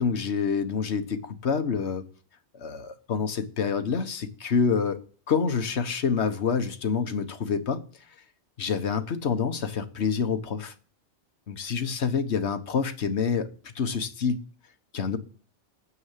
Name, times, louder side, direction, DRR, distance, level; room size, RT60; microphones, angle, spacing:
voice 1, 0.0-2.0 2.6-5.0 5.3-7.8 8.6-10.7 11.5-13.5 13.7-14.4 14.9-15.2, left 6 dB, 70° left, 1.5 m, -27 dB
9.9 x 7.2 x 7.4 m
omnidirectional pair, 1.2 m